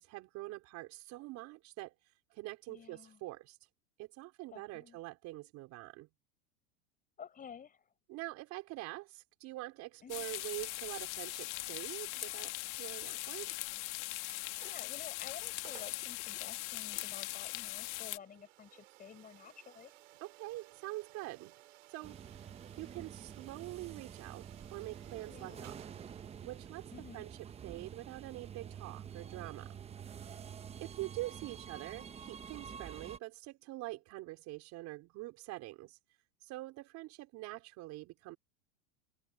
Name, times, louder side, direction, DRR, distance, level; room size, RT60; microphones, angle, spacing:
voice 1, 0.0-1.9 2.3-3.6 4.0-6.1 8.1-13.5 20.2-21.5 21.9-22.5 22.8-25.9 26.4-27.4 27.6-29.8 30.3-30.4 30.8-36.0 36.4-38.4, right 19 dB, 45° right, 4.6 m, -45 dB
voice 2, 2.7-3.2 4.5-5.0 7.2-7.9 10.0-10.3 14.6-19.9 25.3-25.7 26.9-27.3, left 7 dB, 20° left, 4.8 m, -52 dB
sound 1, 10.1-18.2, left 23 dB, 65° left, 2.1 m, -40 dB
sound 2, 14.2-15.0 15.4-15.5 15.6-16.1 16.8-29.6, right 18 dB, 75° right, 5.9 m, -60 dB
sound 3, 22.0-33.2, right 8 dB, 15° right, 0.8 m, -48 dB
supercardioid pair, 135°, 38 cm